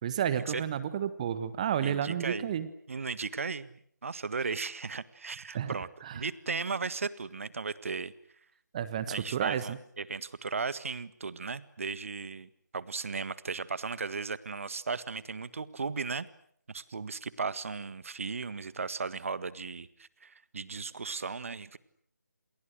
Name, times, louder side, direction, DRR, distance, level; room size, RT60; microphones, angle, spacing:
voice 1, 0.0-2.7 5.5-5.8 6.0-6.2 8.7-9.8, right 9 dB, 20° right, 14 dB, 1.3 m, -31 dB
voice 2, 1.8-2.5 2.9-3.7 4.0-5.9 6.1-8.1 9.1-16.3 16.7-21.8, right 4 dB, 45° right, 16 dB, 1.6 m, -36 dB
28.5 x 28.5 x 6.6 m, 0.66 s
figure-of-eight pair, 155°, 10 cm